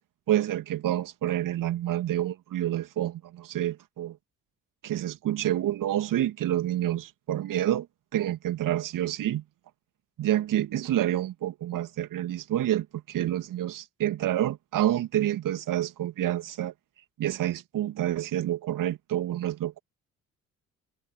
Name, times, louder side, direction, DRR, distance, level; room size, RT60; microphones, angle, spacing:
voice 1, 0.3-4.2 4.8-7.9 8.1-9.4 10.2-16.7 17.2-19.8, right 12 dB, 50° right, 2.6 m, -28 dB
figure-of-eight pair, 45°, 40 cm